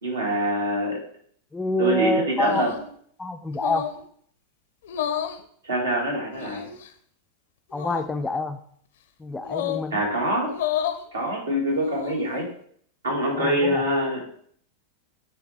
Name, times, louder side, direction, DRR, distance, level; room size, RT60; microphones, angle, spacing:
voice 1, 0.0-1.0 1.8-2.7 5.6-6.7 9.9-10.5 11.1-12.5 13.0-14.2, right 1 dB, 75° right, -2 dB, 2.0 m, -24 dB
voice 2, 1.5-2.7 3.2-3.9 7.7-8.6 9.2-10.0 13.3-13.8, left 2 dB, 10° left, 7 dB, 0.4 m, -27 dB
sound 1, 2.4-2.9 3.5-4.0 4.8-5.4 6.3-6.9 7.7-8.1 9.4-9.9 10.5-11.0 11.7-12.3, left 10 dB, 60° left, 0.6 m, -30 dB
9.6 x 3.4 x 3.4 m, 0.62 s
figure-of-eight pair, 90°, 0 cm